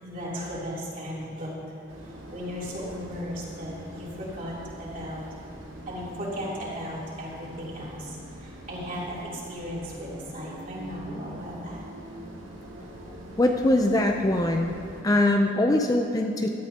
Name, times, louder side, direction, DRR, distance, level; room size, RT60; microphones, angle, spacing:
voice 1, 0.0-1.7 2.0-5.3 5.9-11.8, equal, 45° right, -6 dB, 3.2 m, -36 dB
sound 1, 1.9-15.0, equal, 85° right, 2.1 m, -43 dB
voice 2, 13.4-14.7 15.0-16.5, left 1 dB, 20° left, 3 dB, 0.5 m, -22 dB
16.5 x 12.5 x 2.9 m, 2.6 s
head